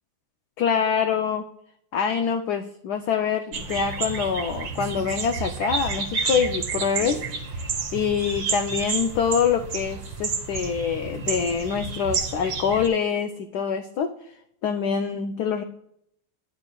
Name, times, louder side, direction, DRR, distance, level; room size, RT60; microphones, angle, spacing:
voice 1, 0.6-1.4 1.9-7.2 7.5-14.1 14.6-15.6, left 7 dB, 90° left, 6 dB, 0.8 m, -25 dB
sound 1, 3.5-12.9, right 5 dB, 65° right, 1.7 m, -30 dB
11.5 x 9.4 x 2.3 m, 0.74 s
omnidirectional pair, 2.3 m